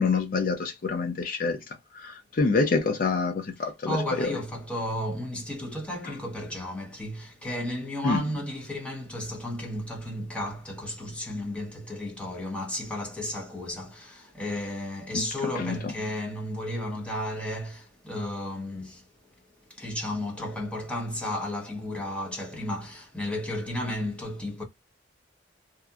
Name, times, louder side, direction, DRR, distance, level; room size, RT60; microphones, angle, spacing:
voice 1, 0.0-1.6 1.9-4.3 8.0-8.2 15.1-15.2 15.6-15.8, left 4 dB, 50° left, 0.5 m, -26 dB
voice 2, 3.6-19.0 19.7-24.6, left 1 dB, 5° left, 0.9 m, -33 dB
2.7 x 2.4 x 2.3 m
head